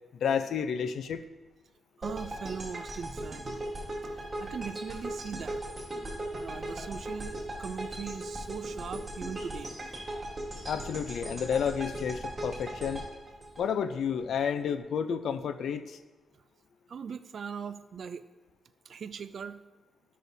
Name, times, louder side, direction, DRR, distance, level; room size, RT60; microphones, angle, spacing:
voice 1, 0.1-1.2 10.7-13.1 13.6-16.0, left 7 dB, 75° left, 10 dB, 0.4 m, -31 dB
sound 1, 2.0-14.2, right 1 dB, 20° right, 2.7 m, -38 dB
voice 2, 2.0-3.6 4.1-5.6 6.4-9.7 16.9-18.2 18.9-19.6, right 6 dB, 60° right, 11 dB, 0.3 m, -40 dB
13.5 x 6.3 x 2.7 m, 1.2 s
cardioid pair, 100°, 0 cm